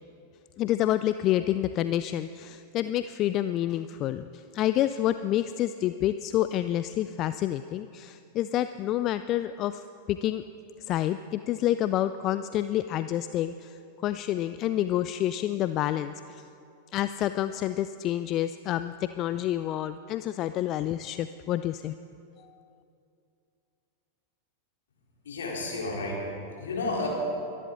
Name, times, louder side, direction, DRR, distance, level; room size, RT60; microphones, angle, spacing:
voice 1, 0.6-10.4 10.9-16.4 16.9-21.9, left 12 dB, 35° left, 12 dB, 0.3 m, -28 dB
voice 2, 25.2-27.1, left 2 dB, 65° left, -3 dB, 3.8 m, -32 dB
23.5 x 11.0 x 3.9 m, 2.6 s
figure-of-eight pair, 90°, 0 cm